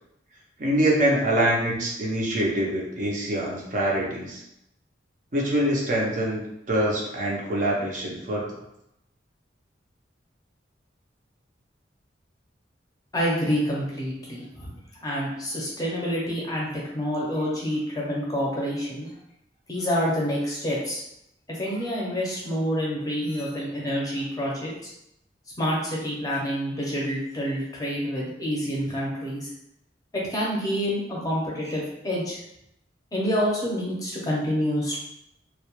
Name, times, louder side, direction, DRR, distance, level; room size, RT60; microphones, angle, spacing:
voice 1, 0.6-4.4 5.3-6.4 6.7-8.4, right 1 dB, 45° right, -3 dB, 0.5 m, -24 dB
voice 2, 13.1-19.1 19.7-21.0 21.5-24.9 25.6-29.5 30.1-32.4 33.1-35.0, equal, 20° left, -5 dB, 0.6 m, -28 dB
2.2 x 2.1 x 2.9 m, 0.81 s
head